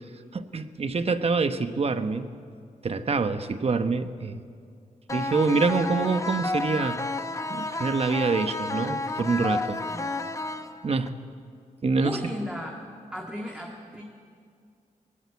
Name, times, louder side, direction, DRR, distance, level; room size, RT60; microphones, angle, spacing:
voice 1, 0.3-2.3 2.8-4.4 5.1-7.0 7.5-9.8 10.8-11.1 11.8-12.2, right 4 dB, 45° right, 9 dB, 1.1 m, -26 dB
sound 1, 5.1-11.1, left 2 dB, 20° left, 1.0 m, -31 dB
voice 2, 9.8-10.1 12.0-12.8 13.1-14.0, equal, 5° right, 0 dB, 2.0 m, -35 dB
21.0 x 20.0 x 8.3 m, 2.2 s
wide cardioid pair, 105°, 14 cm